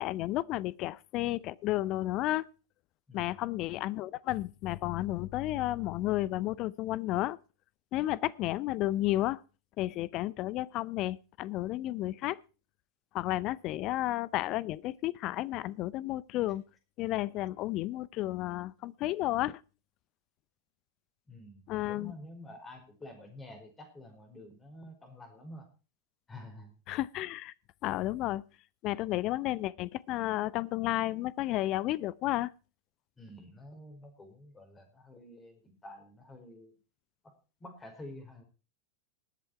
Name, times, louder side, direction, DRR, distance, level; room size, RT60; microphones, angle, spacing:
voice 1, 0.0-2.5 3.1-7.4 7.9-9.4 9.8-12.4 13.1-16.6 17.0-19.6 21.7-22.1 26.9-27.5 27.8-28.4 28.8-32.5, left 16 dB, 40° left, 0.5 m, -32 dB
voice 2, 3.1-3.4 21.3-25.7 26.3-26.8 33.2-36.7 37.2-37.3 37.6-38.4, left 1 dB, 15° left, 4.7 m, -49 dB
19.5 x 8.0 x 4.4 m
figure-of-eight pair, 90°, 0 cm